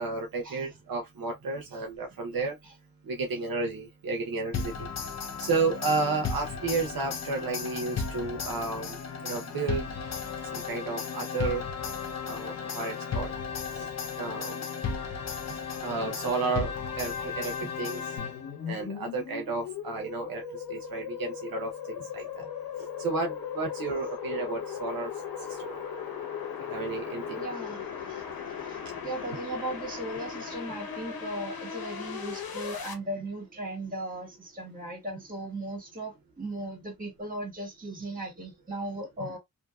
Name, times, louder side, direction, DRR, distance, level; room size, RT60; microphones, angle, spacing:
voice 1, 0.0-2.6 3.0-4.9 5.4-9.0 9.2-9.9 10.5-11.6 12.2-13.4 13.8-13.9 14.2-14.6 15.8-18.2 18.7-22.5 23.0-25.1 25.5-25.9 26.7-27.4, right 3 dB, 75° right, 0.8 m, -32 dB
sound 1, 4.5-18.7, left 5 dB, 50° left, 0.6 m, -35 dB
voice 2, 15.2-15.6 17.6-17.7 27.4-28.2 28.6-39.4, right 1 dB, 25° right, 1.7 m, -37 dB
sound 2, 18.2-32.9, left 7 dB, 85° left, 0.9 m, -38 dB
2.7 x 2.6 x 2.2 m
cardioid pair, 75°, 35 cm